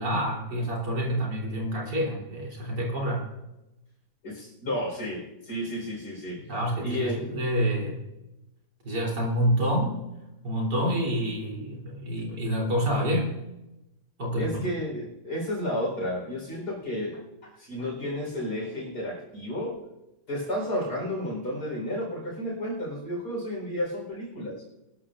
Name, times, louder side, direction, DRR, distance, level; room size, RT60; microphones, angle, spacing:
voice 1, 0.0-3.3 6.5-8.0 8.8-10.0 10.4-13.3 14.2-14.7, equal, 75° right, -3 dB, 4.0 m, -27 dB
voice 2, 4.2-6.5 6.8-7.3 14.4-19.8 20.3-24.6, equal, 70° left, 0 dB, 4.7 m, -32 dB
21.5 x 13.0 x 2.5 m, 0.98 s
omnidirectional pair, 1.8 m